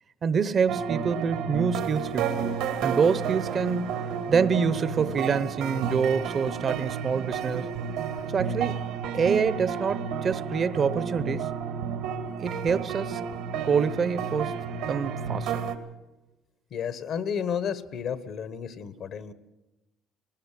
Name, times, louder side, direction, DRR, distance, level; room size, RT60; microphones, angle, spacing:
voice 1, 0.2-2.4 2.8-7.7 8.3-8.8 9.1-11.5 12.4-13.2 13.6-15.6, right 6 dB, 40° right, 0.8 m, -26 dB
sound 1, 0.7-15.8, right 7 dB, 85° right, 1.9 m, -31 dB
voice 2, 16.7-19.3, left 7 dB, 60° left, 1.3 m, -32 dB
19.0 x 19.0 x 7.5 m
cardioid pair, 105°, 0 cm